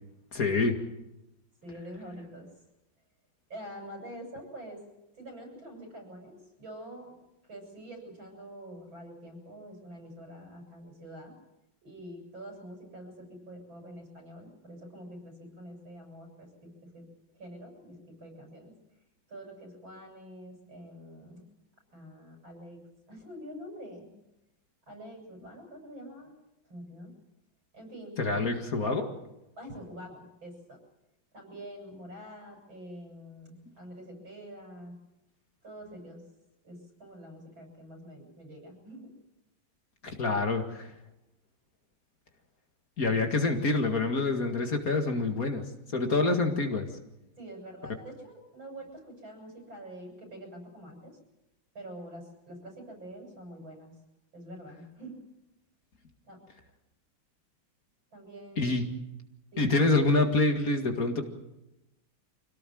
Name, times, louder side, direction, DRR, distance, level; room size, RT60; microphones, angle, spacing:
voice 1, 0.3-0.8 28.2-29.1 40.2-40.9 43.0-45.6 45.9-46.9 58.6-58.9 59.6-61.2, left 3 dB, 45° left, 5 dB, 2.4 m, -26 dB
voice 2, 1.6-2.5 3.5-4.8 5.1-7.1 7.5-11.3 11.8-17.1 17.3-18.7 19.3-21.4 21.9-24.1 24.9-26.3 26.7-27.1 27.7-28.2 29.6-30.8 31.3-35.0 35.6-36.2 36.6-39.1 40.2-40.4 46.0-46.4 47.4-51.2 51.7-54.0 54.3-55.2 56.3-56.4 58.1-58.7 59.5-59.8, equal, 90° right, 3 dB, 8.0 m, -46 dB
25.5 x 17.5 x 7.8 m, 0.92 s
omnidirectional pair, 2.1 m